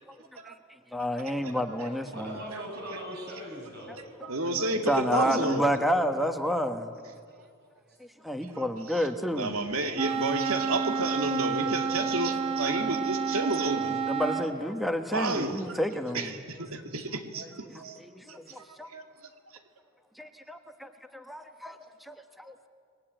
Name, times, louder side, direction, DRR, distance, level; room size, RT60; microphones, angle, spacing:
voice 1, 0.9-2.4 4.9-6.9 8.0-9.6 13.9-16.3 17.7-18.9 20.2-22.5, equal, ahead, 7 dB, 1.2 m, -30 dB
voice 2, 2.1-4.0 7.9-8.0 13.9-14.0, equal, 50° right, -1 dB, 7.1 m, -40 dB
voice 3, 4.2-5.7 8.5-8.6 8.9-9.0 9.3-14.0 14.5-14.6 15.1-15.8 16.1-18.0 18.3-18.5 18.9-19.0, right 2 dB, 85° right, 5 dB, 2.5 m, -31 dB
Wind instrument woodwind instrument, 10.0-14.5, right 5 dB, 30° right, 1.3 m, -30 dB
30.0 x 21.0 x 9.0 m, 2.2 s
head